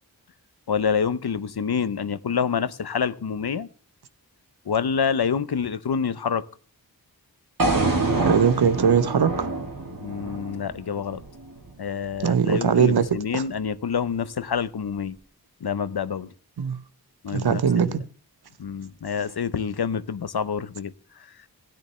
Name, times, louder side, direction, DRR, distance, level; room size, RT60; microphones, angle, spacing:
voice 1, 0.7-3.7 4.7-6.4 9.9-11.2 11.8-15.2 15.6-16.3 17.2-18.0 18.6-21.3, left 6 dB, 85° left, 0.8 m, -27 dB
sound 1, 7.6-11.7, right 2 dB, 60° right, 2.3 m, -26 dB
voice 2, 8.2-9.5 12.2-13.1 13.3-13.4 16.6-16.8 17.3-18.0, right 7 dB, 85° right, 0.9 m, -20 dB
16.0 x 9.8 x 3.2 m
wide cardioid pair, 65°, 37 cm